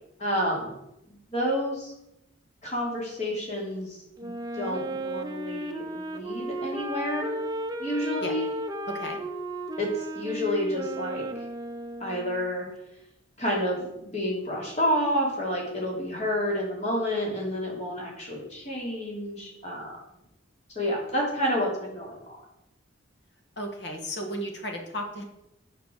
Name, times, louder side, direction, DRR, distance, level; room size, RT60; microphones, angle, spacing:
voice 1, 0.2-0.7 1.1-1.9 2.6-7.3 7.8-8.5 9.8-11.2 12.0-12.6 13.4-20.0 20.7-22.2, equal, 35° left, -2 dB, 2.9 m, -29 dB
Wind instrument woodwind instrument, 4.2-12.5, right 1 dB, 20° right, 0.7 m, -34 dB
voice 2, 8.9-9.2 23.6-25.2, equal, 55° left, 2 dB, 1.7 m, -34 dB
8.1 x 5.7 x 6.6 m, 0.88 s
head